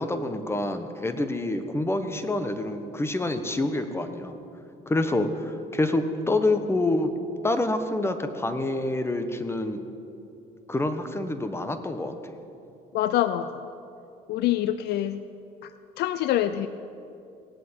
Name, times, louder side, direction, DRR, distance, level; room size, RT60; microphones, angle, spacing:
voice 1, 0.0-4.3 4.9-7.1 7.4-9.8 10.7-12.1, left 2 dB, 15° left, 8 dB, 1.2 m, -27 dB
voice 2, 12.9-13.6 14.3-15.2 15.6-15.7 16.0-16.7, left 12 dB, 75° left, 12 dB, 0.5 m, -25 dB
18.5 x 8.5 x 8.7 m, 2.7 s
cardioid pair, 110°, 17 cm